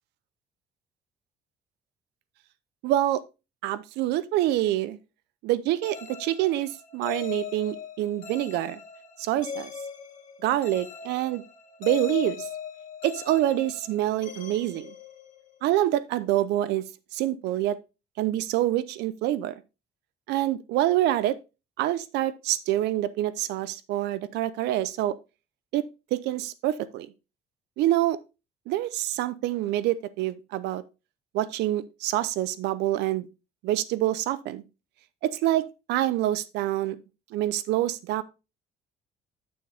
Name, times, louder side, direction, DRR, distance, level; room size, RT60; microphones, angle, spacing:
voice 1, 2.8-3.2 3.6-5.0 5.4-8.8 9.2-9.7 10.4-11.4 11.8-12.5 13.0-14.9 15.6-16.8 17.1-17.8 18.2-19.5 20.3-21.4 21.8-25.2 25.7-25.8 26.1-27.1 27.8-28.2 28.7-30.8 31.3-33.3 33.6-34.6 35.2-37.0 37.3-38.2, right 14 dB, 85° right, 0.6 m, -26 dB
sound 1, 5.8-15.6, left 7 dB, 50° left, 1.7 m, -39 dB
7.0 x 6.4 x 3.3 m
cardioid pair, 110°, 17 cm